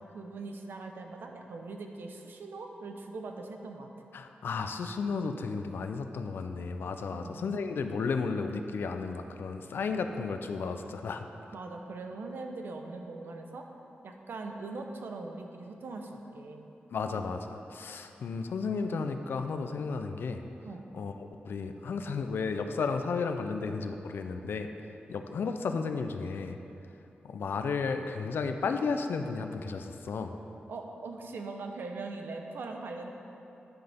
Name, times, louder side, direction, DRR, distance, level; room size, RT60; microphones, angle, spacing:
voice 1, 0.1-3.9 7.1-7.5 11.5-13.7 14.0-16.7 20.6-20.9 30.7-33.1, right 3 dB, 75° right, 3 dB, 0.8 m, -41 dB
voice 2, 4.1-11.2 16.9-20.4 20.9-21.1 21.4-24.7 25.1-26.6 27.2-30.3, left 4 dB, 80° left, 7 dB, 0.5 m, -33 dB
10.0 x 9.4 x 3.6 m, 2.9 s
wide cardioid pair, 165°, 4 cm